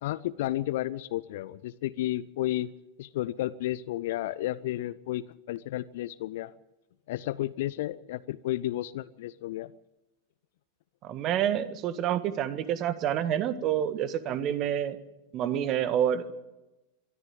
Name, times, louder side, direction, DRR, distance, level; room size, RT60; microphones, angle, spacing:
voice 1, 0.0-2.7 3.0-6.5 7.1-9.7, left 15 dB, 55° left, 18 dB, 0.7 m, -32 dB
voice 2, 11.0-15.0 15.3-16.3, right 10 dB, 35° right, 13 dB, 1.6 m, -28 dB
23.5 x 13.5 x 9.3 m, 1.0 s
figure-of-eight pair, 90°, 0 cm